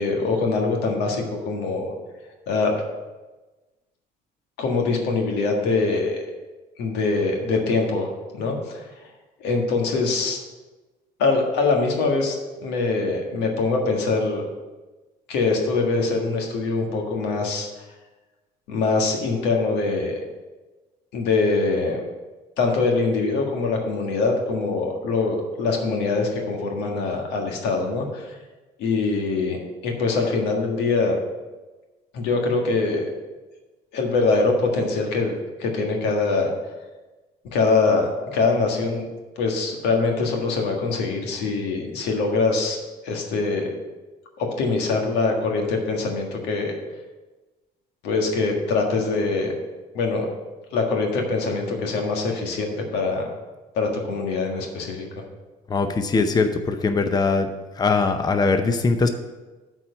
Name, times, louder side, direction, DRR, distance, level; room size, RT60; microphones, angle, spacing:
voice 1, 0.0-1.9 2.5-2.7 4.6-6.2 6.8-8.1 8.3-8.8 9.4-10.4 11.2-14.4 15.3-17.8 18.7-20.2 21.1-22.0 22.6-28.4 28.8-31.2 32.1-33.1 33.9-36.5 37.5-39.0 39.4-43.7 44.4-46.7 48.0-49.5 49.9-50.3 50.7-53.3 53.7-55.1, left 3 dB, 90° left, 2 dB, 1.6 m, -23 dB
voice 2, 55.7-57.5 57.8-59.1, left 4 dB, 25° left, 7 dB, 0.6 m, -21 dB
8.3 x 4.5 x 6.9 m, 1.2 s
cardioid pair, 110°, 17 cm